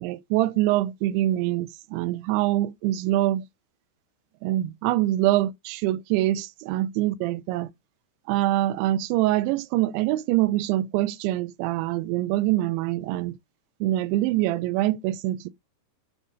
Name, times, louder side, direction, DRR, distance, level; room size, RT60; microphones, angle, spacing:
voice 1, 0.0-3.4 4.4-7.7 8.3-13.4 13.8-15.5, right 15 dB, 85° right, 2.7 m, -24 dB
9.4 x 3.6 x 4.9 m
omnidirectional pair, 5.7 m